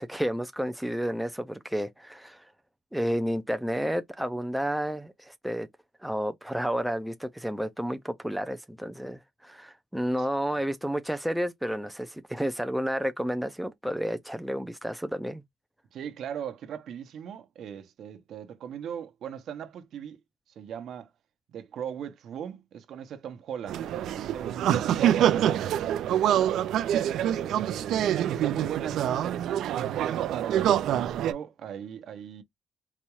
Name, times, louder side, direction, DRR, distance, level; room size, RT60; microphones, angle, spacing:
voice 1, 0.0-2.4 2.9-5.7 6.0-15.4, equal, ahead, 0.3 m, -31 dB
voice 2, 15.9-20.2 20.5-21.1 21.5-26.6 27.3-30.2 30.5-32.4, right 8 dB, 65° right, 0.7 m, -39 dB
sound 1, 23.7-31.3, right 11 dB, 80° right, 0.4 m, -26 dB
4.1 x 2.3 x 3.0 m
cardioid pair, 170°, 0 cm